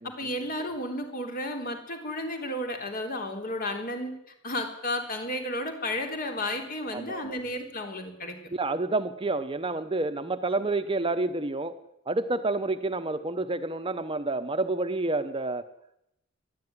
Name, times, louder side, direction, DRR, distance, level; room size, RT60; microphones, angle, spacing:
voice 1, 0.0-4.1 4.4-8.4, left 1 dB, 45° left, 4 dB, 3.9 m, -32 dB
voice 2, 6.9-7.4 8.5-11.8 12.1-15.7, right 2 dB, 25° right, 10 dB, 1.0 m, -29 dB
20.5 x 13.5 x 9.7 m, 0.83 s
head